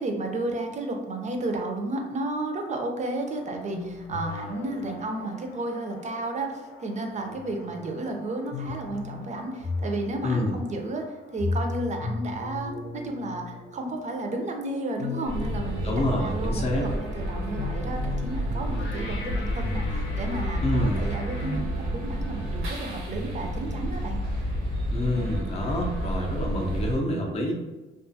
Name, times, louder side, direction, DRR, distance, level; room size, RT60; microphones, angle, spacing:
voice 1, 0.0-11.0 11.3-24.2, right 2 dB, 35° right, 3 dB, 0.5 m, -32 dB
sound 1, 3.2-21.6, left 3 dB, 85° left, 0.7 m, -37 dB
voice 2, 10.2-10.5 15.8-16.9 20.6-21.0 24.9-27.5, left 1 dB, 30° left, 0 dB, 0.5 m, -27 dB
sound 2, 15.3-27.0, equal, 85° right, 0.8 m, -30 dB
2.4 x 2.4 x 2.6 m, 1.1 s
cardioid pair, 90°, 20 cm